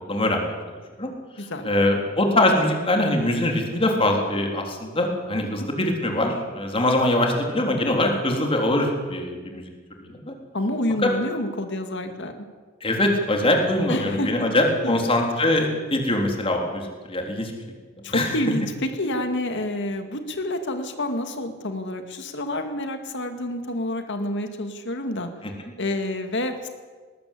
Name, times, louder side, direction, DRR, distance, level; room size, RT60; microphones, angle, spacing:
voice 1, 0.1-0.5 1.0-1.1 1.4-9.7 10.0-10.3 11.0-11.1 12.8-17.5 18.1-18.4 25.4-25.5, left 1 dB, 25° left, 2 dB, 3.8 m, -23 dB
voice 2, 1.4-1.7 5.6-5.7 10.5-12.4 13.9-14.5 14.8-15.0 18.0-25.3 25.8-26.7, left 1 dB, 60° left, 7 dB, 2.2 m, -28 dB
20.0 x 19.5 x 8.5 m, 1.5 s
head